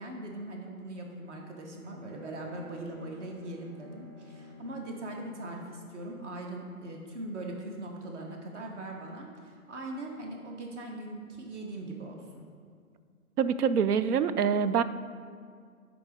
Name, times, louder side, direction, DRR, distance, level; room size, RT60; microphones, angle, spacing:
voice 1, 0.0-12.4, right 1 dB, 50° right, 1 dB, 1.2 m, -40 dB
Bowed string instrument, 1.5-5.7, left 2 dB, 30° right, 0.4 m, -50 dB
voice 2, 13.4-14.8, right 7 dB, 85° right, 14 dB, 0.6 m, -25 dB
11.0 x 4.0 x 5.0 m, 2.1 s
hypercardioid pair, 150°, 45 cm